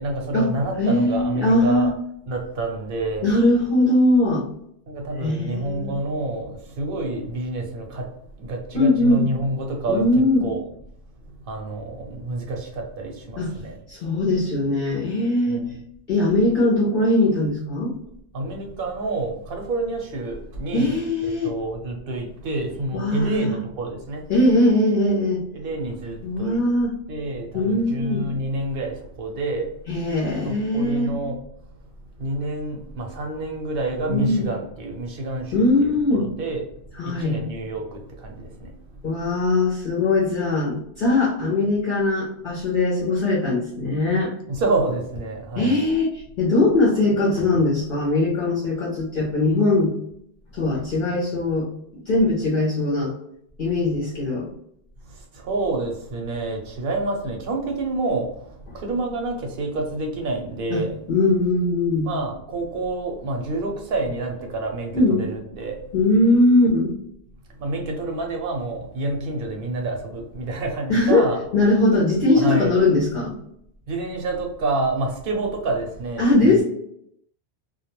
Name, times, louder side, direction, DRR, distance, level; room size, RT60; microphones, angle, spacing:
voice 1, 0.0-1.9 2.2-3.3 4.9-10.6 11.2-13.8 15.5-15.8 18.3-20.9 21.4-24.3 25.5-26.6 27.1-29.7 30.4-31.4 32.2-36.6 36.9-38.7 44.5-45.8 55.0-61.0 62.0-65.8 67.5-71.4 72.4-72.8 73.9-76.6, right 2 dB, 55° right, 2 dB, 0.7 m, -28 dB
voice 2, 0.8-1.9 3.2-4.4 5.2-5.9 8.7-9.3 9.9-10.5 13.4-13.5 13.9-15.7 16.1-18.0 20.7-21.5 22.9-23.6 24.3-25.4 26.2-27.0 27.5-28.3 29.9-31.1 34.1-34.5 35.5-36.3 37.0-37.4 39.0-44.3 45.5-49.9 50.5-51.7 51.9-53.1 53.6-54.5 60.7-62.1 64.9-65.2 65.9-66.9 70.9-71.3 71.5-73.3 76.2-76.6, left 2 dB, 55° left, -6 dB, 0.7 m, -20 dB
2.3 x 2.1 x 2.9 m, 0.72 s
omnidirectional pair, 1.2 m